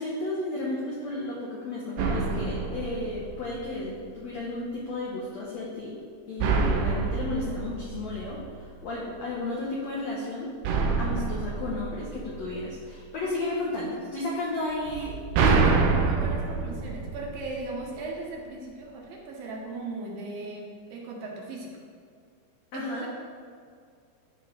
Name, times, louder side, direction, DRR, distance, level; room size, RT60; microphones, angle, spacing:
voice 1, 0.0-5.9 6.3-10.5 11.0-15.2 22.7-23.1, left 2 dB, 85° left, -4 dB, 1.5 m, -33 dB
sound 1, 2.0-3.9 6.4-8.8 10.6-12.9 14.9-17.9, right 4 dB, 90° right, 2.6 m, -27 dB
voice 2, 15.3-21.7 22.7-23.1, right 2 dB, 70° right, -1 dB, 2.5 m, -38 dB
12.5 x 5.0 x 3.2 m, 2.2 s
omnidirectional pair, 4.6 m